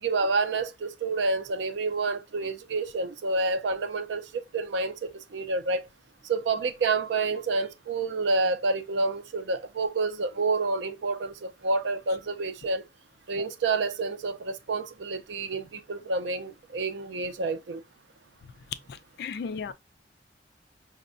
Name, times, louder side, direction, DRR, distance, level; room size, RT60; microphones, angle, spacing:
voice 1, 0.0-5.8 6.2-12.8 13.3-17.8, right 3 dB, 85° right, 0.5 m, -29 dB
voice 2, 18.9-19.7, left 5 dB, 60° left, 0.3 m, -35 dB
5.1 x 2.1 x 2.4 m
head